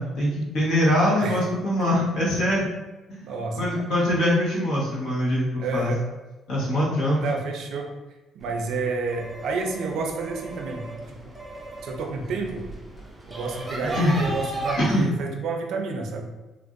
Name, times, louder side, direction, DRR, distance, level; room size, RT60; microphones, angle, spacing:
voice 1, 0.0-2.7 3.1-3.3 3.6-5.9 6.5-7.2 13.9-14.2 14.8-15.1, left 1 dB, 70° left, -6 dB, 1.2 m, -23 dB
voice 2, 3.2-3.8 5.6-6.0 7.2-7.9 8.3-11.2 11.8-12.6 13.3-16.2, right 4 dB, 65° right, 3 dB, 0.4 m, -30 dB
sound 1, 8.4-14.8, right 1 dB, ahead, 0.5 m, -36 dB
3.3 x 2.5 x 2.4 m, 1.1 s
cardioid pair, 165°, 0 cm